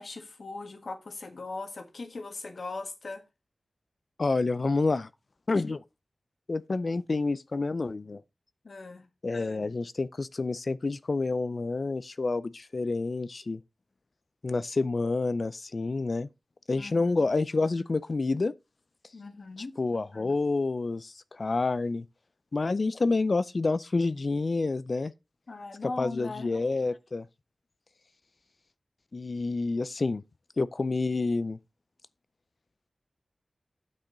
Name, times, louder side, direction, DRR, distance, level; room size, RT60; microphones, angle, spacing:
voice 1, 0.0-3.2 8.6-9.1 16.8-17.2 19.1-19.7 25.5-26.5, left 3 dB, 75° left, 1.6 m, -39 dB
voice 2, 4.2-5.1 5.5-5.8 6.5-8.2 9.2-13.6 14.4-16.3 16.7-18.5 19.8-22.1 22.5-25.1 25.8-27.3 29.1-30.2 30.6-31.6, left 3 dB, 55° left, 0.4 m, -28 dB
8.9 x 7.7 x 3.9 m
wide cardioid pair, 75°, 0 cm